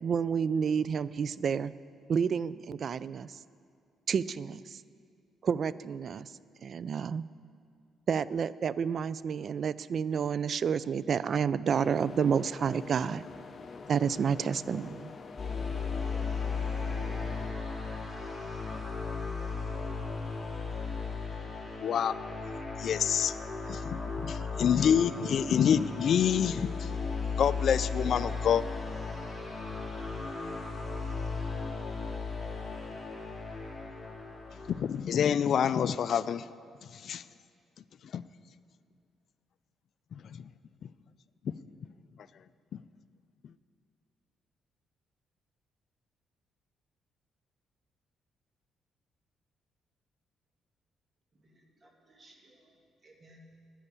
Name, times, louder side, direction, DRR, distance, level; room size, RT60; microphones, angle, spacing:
voice 1, 0.0-1.7 2.1-3.4 4.1-4.8 5.4-6.3 6.6-7.2 8.1-13.2 13.9-15.1, right 6 dB, 55° right, 18 dB, 0.3 m, -30 dB
sound 1, 11.7-17.5, left 4 dB, 45° left, 0.7 m, -46 dB
sound 2, 15.4-34.9, left 4 dB, 20° left, 2.8 m, -36 dB
voice 2, 21.8-22.1 22.8-23.4 23.7-26.9 27.4-28.6 34.7-36.5 36.9-37.2 38.1-38.2 40.1-40.5, left 8 dB, 60° left, 16 dB, 0.3 m, -27 dB
voice 3, 51.4-52.7 53.0-53.6, right 1 dB, 35° right, 1 dB, 2.1 m, -59 dB
9.8 x 9.8 x 8.3 m, 2.3 s
cardioid pair, 90°, 0 cm